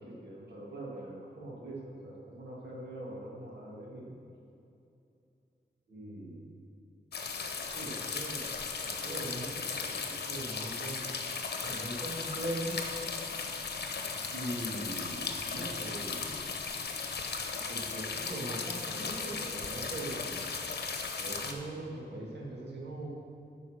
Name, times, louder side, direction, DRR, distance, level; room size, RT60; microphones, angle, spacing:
voice 1, 0.0-4.2 5.9-6.5 7.7-8.5 8.8-11.0 11.6-12.8 14.3-16.4 17.7-20.5 21.2-23.1, right 1 dB, 80° right, -4 dB, 1.9 m, -41 dB
sound 1, 7.1-21.5, left 4 dB, 70° left, 0.9 m, -37 dB
9.5 x 5.5 x 6.4 m, 2.7 s
wide cardioid pair, 160°, 18 cm